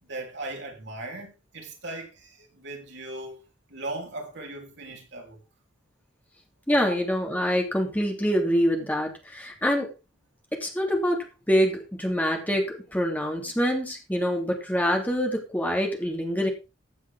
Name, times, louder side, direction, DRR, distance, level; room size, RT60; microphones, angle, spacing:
voice 1, 0.0-3.4 3.7-5.4, right 2 dB, 65° right, 3.7 m, -38 dB
voice 2, 6.7-9.9 10.6-16.5, equal, 10° left, 3.0 m, -25 dB
15.5 x 8.2 x 3.6 m
head